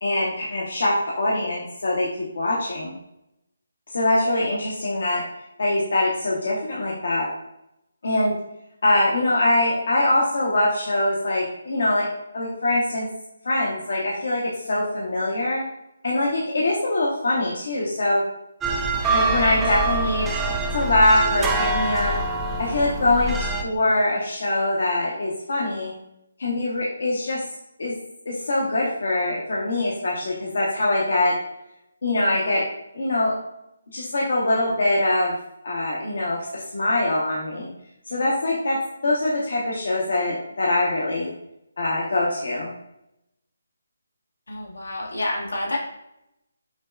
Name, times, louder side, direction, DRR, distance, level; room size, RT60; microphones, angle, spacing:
voice 1, 0.0-2.9 3.9-5.2 5.6-7.3 8.0-8.3 8.8-12.1 12.3-13.1 13.4-14.4 14.7-15.6 16.0-18.2 19.1-20.3 20.7-22.1 22.6-23.4 23.6-25.9 26.4-27.4 27.8-27.9 28.3-31.3 32.0-32.6 32.9-33.3 33.9-35.3 35.6-37.7 38.1-38.8 39.0-41.3 41.8-42.7, left 1 dB, 65° left, -5 dB, 0.8 m, -23 dB
sound 1, 18.6-23.6, right 2 dB, 10° right, 0.4 m, -25 dB
voice 2, 44.5-45.8, left 1 dB, 85° left, -2 dB, 1.2 m, -28 dB
6.1 x 2.2 x 2.3 m, 0.83 s
figure-of-eight pair, 155°, 0 cm